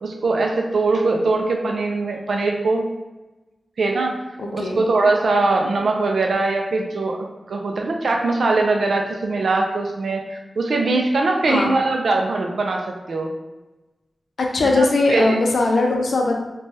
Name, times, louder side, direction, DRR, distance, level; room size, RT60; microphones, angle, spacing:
voice 1, 0.0-2.9 3.8-4.1 4.5-13.3 14.8-15.4, right 3 dB, 80° right, 2 dB, 0.3 m, -21 dB
voice 2, 4.4-4.8 11.5-11.7 14.5-16.3, left 2 dB, 80° left, 1 dB, 0.5 m, -19 dB
3.1 x 2.2 x 2.6 m, 1.1 s
wide cardioid pair, 100°, 0 cm